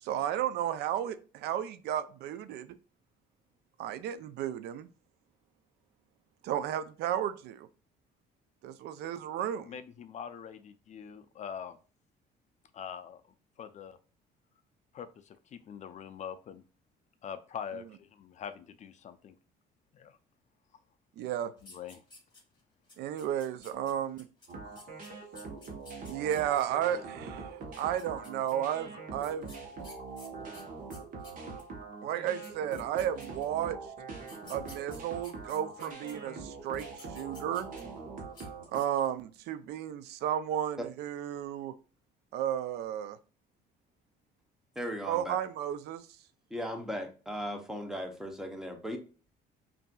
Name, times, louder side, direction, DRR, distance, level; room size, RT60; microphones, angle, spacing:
voice 1, 0.0-2.8 3.8-4.9 6.4-7.7 8.6-9.7 21.2-21.5 23.0-24.3 26.1-29.5 32.0-33.8 34.5-37.7 38.7-41.7 42.3-43.2 45.1-46.0, right 10 dB, 80° right, 12 dB, 0.4 m, -33 dB
voice 2, 9.6-11.8 12.7-13.2 13.6-14.0 14.9-16.6 17.2-19.3 19.9-20.2 21.6-22.0, left 8 dB, 45° left, 10 dB, 0.4 m, -43 dB
sound 1, 21.6-22.6 22.9-26.6 27.6-28.5 29.2-31.7 32.2-32.3 32.4-33.6 34.2-36.1 36.6-38.0 38.3-38.5 38.7-39.2, left 2 dB, 25° left, 1.9 m, -54 dB
sound 2, 24.5-38.8, right 4 dB, 50° right, 1.1 m, -43 dB
voice 3, 44.8-45.4 46.5-49.0, equal, 5° right, 4 dB, 0.8 m, -37 dB
5.4 x 2.6 x 2.3 m, 0.37 s
cardioid pair, 110°, 17 cm